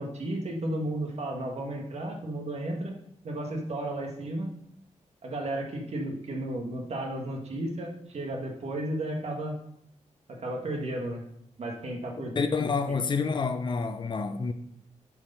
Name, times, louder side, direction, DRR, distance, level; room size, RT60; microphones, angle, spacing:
voice 1, 0.0-2.9 3.2-4.5 5.2-9.6 10.3-11.2 11.6-12.3, right 1 dB, 55° right, 1.9 m, -33 dB
voice 2, 12.4-14.5, left 4 dB, 40° left, 0.7 m, -28 dB
9.2 x 4.9 x 5.6 m
wide cardioid pair, 115°, 13 cm